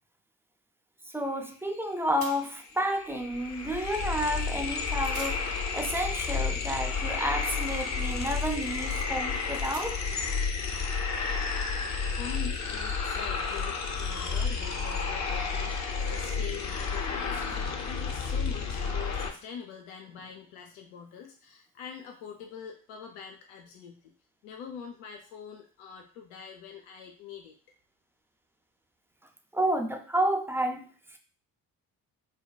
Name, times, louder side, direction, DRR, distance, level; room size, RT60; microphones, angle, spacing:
voice 1, 1.1-10.0 29.5-31.2, equal, 5° right, 4 dB, 0.4 m, -31 dB
sound 1, 1.7-1.9 2.2-2.7 4.5-4.7 5.0-10.3, right 4 dB, 45° right, 0.7 m, -49 dB
sound 2, 2.3-2.4 2.6-19.3, left 5 dB, 35° left, 0.6 m, -31 dB
voice 2, 12.1-24.1 24.4-27.5, left 7 dB, 75° left, 3 dB, 0.6 m, -44 dB
4.3 x 2.2 x 2.3 m, 0.40 s
hypercardioid pair, 45°, 46 cm